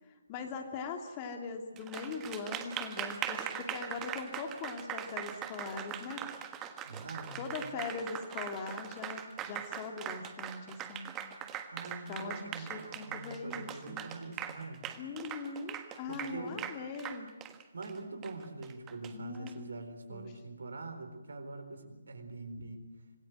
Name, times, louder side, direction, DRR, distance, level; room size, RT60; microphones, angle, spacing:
voice 1, 0.3-6.2 7.4-11.2 12.1-14.0 15.0-17.3 19.1-19.7 20.1-20.3 22.6-22.7, left 4 dB, 25° left, 4 dB, 2.7 m, -41 dB
Applause, 1.8-19.5, right 10 dB, 15° right, 1.5 m, -41 dB
voice 2, 6.8-7.7 11.7-14.8 16.1-16.7 17.7-22.9, right 3 dB, 60° right, 7 dB, 4.2 m, -44 dB
26.0 x 21.0 x 7.8 m, 1.1 s
figure-of-eight pair, 140°, 0 cm